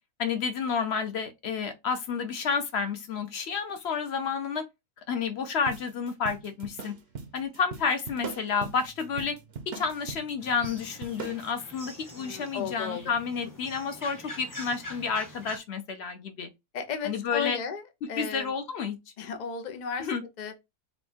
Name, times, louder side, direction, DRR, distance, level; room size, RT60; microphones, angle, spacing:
voice 1, 0.2-4.6 5.1-7.0 7.3-9.4 9.7-16.5 17.0-17.6 18.0-19.0 20.0-20.2, left 5 dB, 55° left, 0.8 m, -30 dB
sound 1, 5.7-11.5, right 5 dB, 55° right, 0.7 m, -41 dB
sound 2, 10.4-15.6, left 1 dB, 15° left, 0.7 m, -44 dB
voice 2, 12.2-13.1 16.7-17.8 18.1-18.5 19.2-20.1 20.4-20.5, left 6 dB, 80° left, 0.4 m, -34 dB
4.2 x 2.3 x 4.3 m
omnidirectional pair, 1.7 m